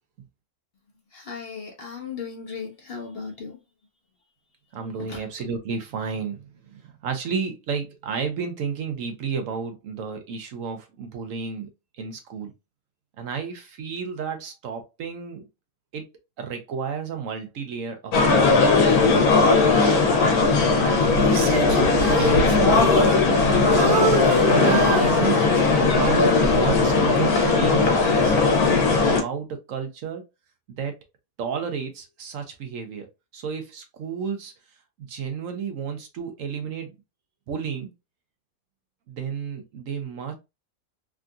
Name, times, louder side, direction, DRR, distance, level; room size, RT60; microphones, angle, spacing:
voice 1, 1.1-3.6 5.0-5.2, left 5 dB, 50° left, 0.8 m, -36 dB
voice 2, 4.7-11.7 12.0-12.5 13.2-15.4 15.9-16.1 16.4-24.0 24.3-28.4 28.7-30.2 30.8-31.0 31.4-33.1 33.3-34.5 35.0-36.9 37.5-37.9 39.1-40.3, right 6 dB, 70° right, 1.0 m, -32 dB
sound 1, 18.1-29.2, left 3 dB, 90° left, 1.3 m, -18 dB
Female singing, 21.2-23.5 23.8-25.8 26.3-26.6, right 4 dB, 90° right, 1.2 m, -27 dB
3.6 x 2.6 x 2.2 m
omnidirectional pair, 1.5 m